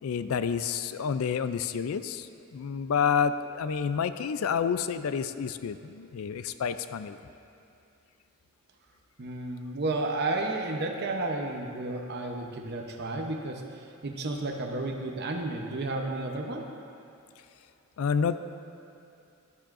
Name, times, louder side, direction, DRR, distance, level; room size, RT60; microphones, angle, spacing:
voice 1, 0.0-7.2 18.0-18.4, left 6 dB, 70° left, 12 dB, 0.4 m, -29 dB
voice 2, 9.2-13.6 14.0-16.7, right 2 dB, 50° right, 1 dB, 0.8 m, -32 dB
12.0 x 11.5 x 2.5 m, 2.7 s
head